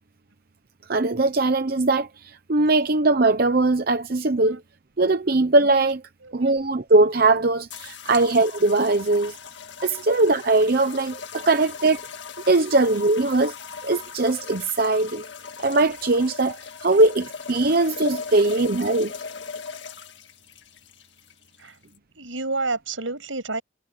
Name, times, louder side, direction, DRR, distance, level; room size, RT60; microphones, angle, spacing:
voice 1, 0.9-4.6 5.0-6.0 6.3-9.4 9.8-12.0 12.5-13.5 13.8-15.3 15.6-19.1, right 2 dB, 50° right, 0.8 m, -20 dB
voice 2, 6.2-6.5 8.1-8.2 10.0-10.1 11.4-11.7 17.7-17.8 18.3-18.6 21.6-23.6, right 3 dB, 85° right, 7.6 m, -31 dB
sound 1, 7.7-22.0, left 6 dB, 65° left, 1.9 m, -38 dB
head